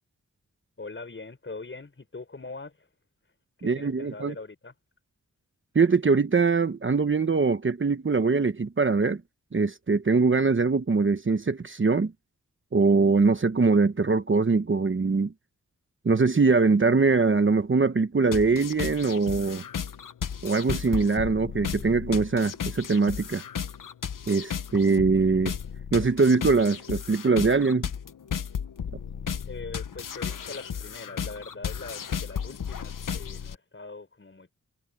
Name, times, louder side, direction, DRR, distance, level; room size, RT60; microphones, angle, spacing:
voice 1, 0.8-2.9 3.6-4.7 29.5-34.5, left 3 dB, 40° left, 5.2 m, -42 dB
voice 2, 3.6-4.3 5.7-9.2 9.5-12.1 12.7-15.3 16.0-19.6 20.4-23.4 24.3-25.5 25.9-27.9, right 4 dB, 40° right, 1.1 m, -22 dB
sound 1, 18.3-33.6, left 7 dB, 90° left, 1.1 m, -34 dB
wide cardioid pair, 85°, 31 cm